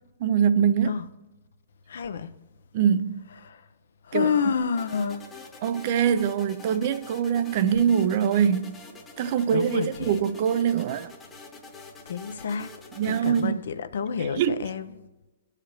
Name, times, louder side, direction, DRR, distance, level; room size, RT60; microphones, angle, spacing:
voice 1, 0.2-1.0 2.7-3.2 4.1-4.3 5.6-8.7 9.2-11.1 13.0-13.6 14.4-14.6, right 8 dB, 50° right, 0.4 m, -23 dB
voice 2, 1.9-2.3 3.3-3.5 4.0-5.3 9.5-10.2 12.1-12.7 13.0-15.0, left 6 dB, 75° left, 0.5 m, -29 dB
sound 1, 4.7-13.5, left 3 dB, 15° left, 1.0 m, -46 dB
14.5 x 4.9 x 3.0 m
hypercardioid pair, 140°, 0 cm